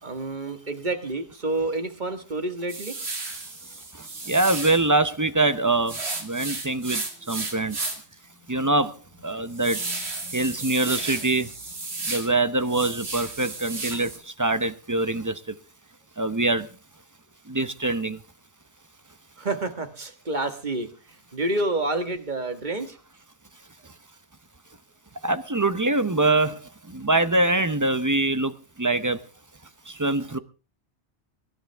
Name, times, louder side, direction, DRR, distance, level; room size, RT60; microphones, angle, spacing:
voice 1, 0.0-2.9 19.4-20.9 21.3-23.0, right 2 dB, 40° right, 1.8 m, -28 dB
sound 1, 2.7-4.9 5.9-8.1 8.6-8.7 9.1-12.3 12.6-14.2, right 3 dB, 65° right, 2.7 m, -33 dB
voice 2, 4.3-5.9 6.2-7.0 7.3-7.7 8.5-8.9 9.2-9.8 10.3-11.5 12.1-14.1 14.4-15.3 16.2-16.6 17.5-18.2 25.2-26.5 27.0-28.5 28.8-29.2 30.0-30.4, right 2 dB, 20° right, 0.6 m, -23 dB
23.5 x 11.5 x 3.4 m
omnidirectional pair, 1.2 m